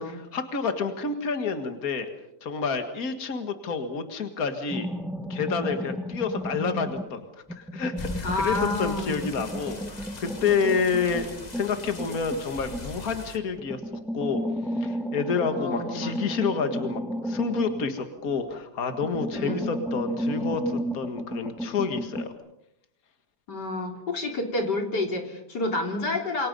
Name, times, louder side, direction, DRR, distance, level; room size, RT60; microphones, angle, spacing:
voice 1, 0.0-2.1 2.4-4.9 5.3-7.3 7.5-11.3 11.5-13.8 14.1-14.4 14.8-22.3, left 5 dB, 60° left, 7 dB, 2.2 m, -29 dB
sound 1, 4.7-7.2 7.5-13.1 13.6-18.6 18.9-22.3, equal, ahead, 2.1 m, -33 dB
sound 2, 8.0-13.4, left 2 dB, 25° left, 1.7 m, -40 dB
voice 2, 8.2-9.3 15.5-16.4 19.3-19.7 23.5-26.5, left 2 dB, 85° left, 3 dB, 4.1 m, -29 dB
28.0 x 24.0 x 5.4 m, 0.80 s
omnidirectional pair, 1.8 m